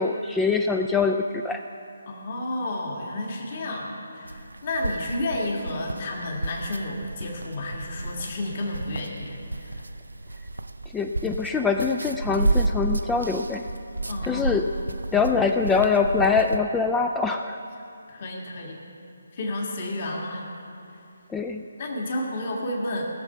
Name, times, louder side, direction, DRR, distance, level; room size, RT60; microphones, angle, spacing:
voice 1, 0.0-1.6 10.9-13.7 14.2-14.7 15.1-17.6 21.3-21.6, left 5 dB, 10° left, 5 dB, 0.3 m, -24 dB
voice 2, 2.1-9.8 14.1-14.5 18.1-18.8 19.3-20.4 21.8-23.0, left 1 dB, 45° left, -1 dB, 1.9 m, -31 dB
sound 1, 4.3-16.6, right 2 dB, 85° right, 0.5 m, -31 dB
18.5 x 6.9 x 5.7 m, 2.6 s
figure-of-eight pair, 150°, 0 cm